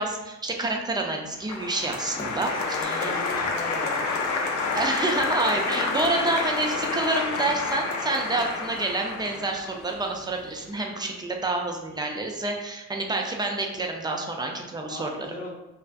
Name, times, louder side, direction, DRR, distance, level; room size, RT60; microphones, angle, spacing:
voice 1, 0.0-3.1 4.7-15.3, right 2 dB, 15° right, 2 dB, 0.3 m, -28 dB
Applause, 1.4-10.5, left 4 dB, 70° left, 0.5 m, -29 dB
voice 2, 2.6-4.0 6.3-6.4 14.9-15.5, left 2 dB, 30° left, -3 dB, 0.9 m, -37 dB
2.5 x 2.4 x 2.3 m, 1.0 s
cardioid pair, 90°, 30 cm